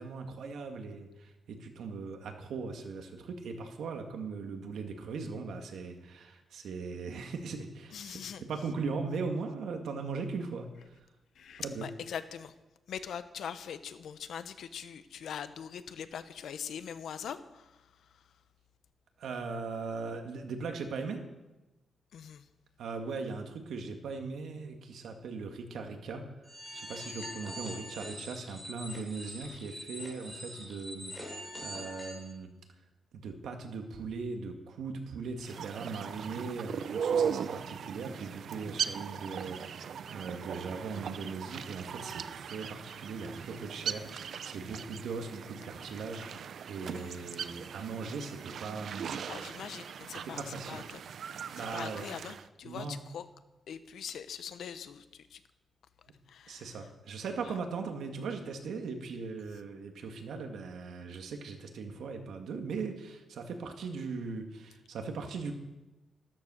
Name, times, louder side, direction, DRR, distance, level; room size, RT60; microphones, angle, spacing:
voice 1, 0.0-11.1 11.6-11.9 19.2-21.2 22.8-32.5 33.1-49.3 50.2-50.8 51.5-52.1 52.6-53.0 56.5-65.5, right 4 dB, 85° right, 4 dB, 2.2 m, -39 dB
voice 2, 7.9-8.4 11.3-12.5 12.9-18.3 22.1-22.5 46.9-47.3 49.3-51.0 51.6-53.2 53.7-55.4 56.3-56.7 57.4-57.6, left 8 dB, 80° left, 11 dB, 1.0 m, -42 dB
sound 1, 26.4-32.2, equal, 10° left, 6.4 m, -44 dB
sound 2, 35.4-52.5, right 7 dB, 70° right, 0.6 m, -38 dB
14.0 x 13.5 x 6.5 m, 1.0 s
wide cardioid pair, 120°, 0 cm